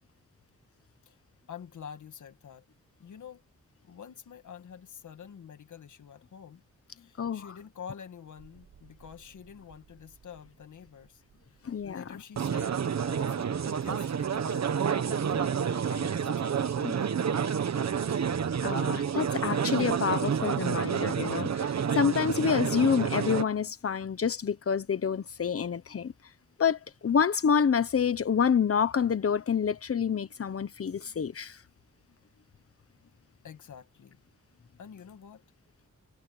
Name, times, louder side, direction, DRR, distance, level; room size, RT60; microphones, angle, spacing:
voice 1, 1.5-2.7 3.0-3.4 3.8-6.6 7.0-11.2 11.5-14.7 15.0-17.9 33.4-34.2 34.8-35.4, left 7 dB, 90° left, 1.9 m, -47 dB
sound 1, 8.4-8.5 8.7-8.8 9.1-9.2 12.4-23.4, right 7 dB, 65° right, 1.3 m, -29 dB
voice 2, 11.6-12.0 16.8-16.9 18.6-26.1 26.6-31.6, left 7 dB, 50° left, 1.2 m, -28 dB
wide cardioid pair, 100°, 29 cm